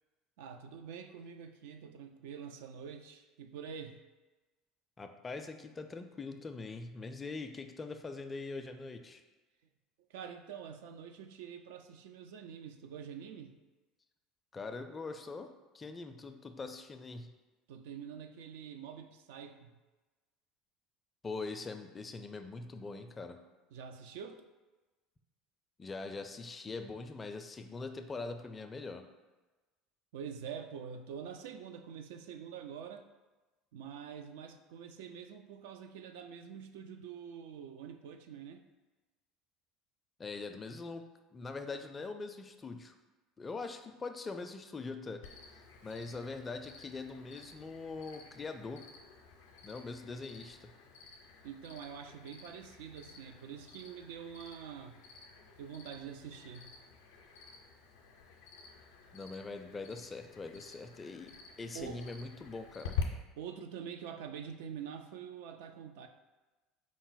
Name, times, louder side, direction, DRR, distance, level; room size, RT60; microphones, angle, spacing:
voice 1, 0.4-4.0 10.1-13.5 17.7-19.7 23.7-24.4 30.1-33.1 33.7-38.7 51.4-54.9 55.6-56.7 61.7-62.0 63.4-66.1, right 7 dB, 75° right, 7 dB, 0.3 m, -46 dB
voice 2, 5.0-9.2 14.5-17.3 21.2-23.4 25.8-29.1 40.2-41.1 41.3-42.9 43.4-45.2 45.5-48.8 49.6-50.7 59.1-61.3 61.6-63.0, left 3 dB, 25° left, 7 dB, 0.4 m, -42 dB
Cricket, 45.2-63.0, left 6 dB, 85° left, 0.5 m, -48 dB
4.8 x 2.0 x 3.9 m, 1.2 s
hypercardioid pair, 80°, 0 cm